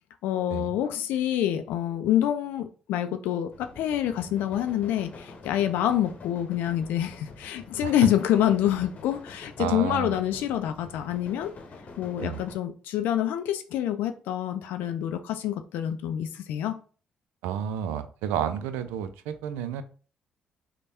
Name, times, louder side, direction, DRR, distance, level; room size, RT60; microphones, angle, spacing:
voice 1, 0.2-11.5 12.0-16.8, left 11 dB, 75° left, 9 dB, 0.3 m, -27 dB
sound 1, 3.5-12.6, left 3 dB, 45° left, 0.9 m, -46 dB
voice 2, 9.6-10.2 12.2-12.4 17.4-19.8, right 9 dB, 85° right, 11 dB, 0.3 m, -31 dB
3.2 x 2.1 x 4.2 m, 0.39 s
hypercardioid pair, 55°, 3 cm